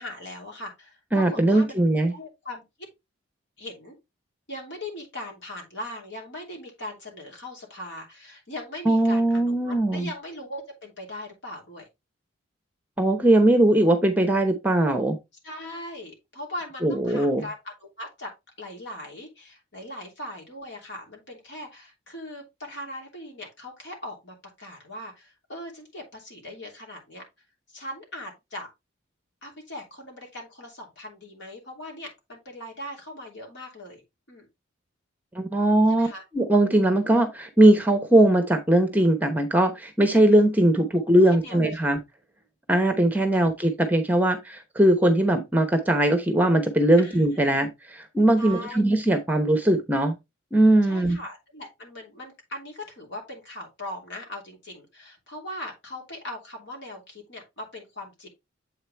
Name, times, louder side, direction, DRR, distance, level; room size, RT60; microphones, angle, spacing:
voice 1, 0.0-1.8 2.1-2.6 3.6-4.0 4.5-11.9 15.4-18.3 18.6-27.2 27.7-28.7 29.4-34.0 34.3-34.5 35.9-36.2 41.3-41.9 43.3-43.4 47.0-47.5 48.4-48.8 50.8-58.3, left 1 dB, 60° left, 3.0 m, -40 dB
voice 2, 1.1-2.1 8.9-10.1 13.0-15.2 16.8-17.4 35.3-36.1 36.3-42.0 42.7-50.1 50.5-51.2, right 1 dB, 10° right, 0.9 m, -20 dB
7.7 x 4.9 x 3.4 m
head